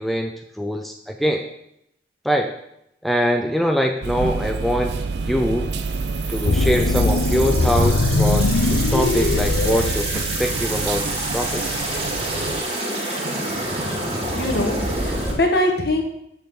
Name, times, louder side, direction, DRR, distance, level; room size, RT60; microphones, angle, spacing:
voice 1, 0.0-1.5 2.2-2.5 3.0-4.9 5.3-5.7 6.3-11.6, equal, ahead, 3 dB, 0.5 m, -23 dB
sound 1, 4.0-12.6, right 3 dB, 65° right, 0.6 m, -27 dB
sound 2, 5.6-15.3, right 2 dB, 35° right, 1.6 m, -28 dB
sound 3, 6.4-10.7, left 3 dB, 85° left, 0.6 m, -21 dB
voice 2, 14.4-16.0, left 1 dB, 55° left, 3 dB, 1.4 m, -22 dB
6.9 x 5.8 x 6.5 m, 0.79 s
head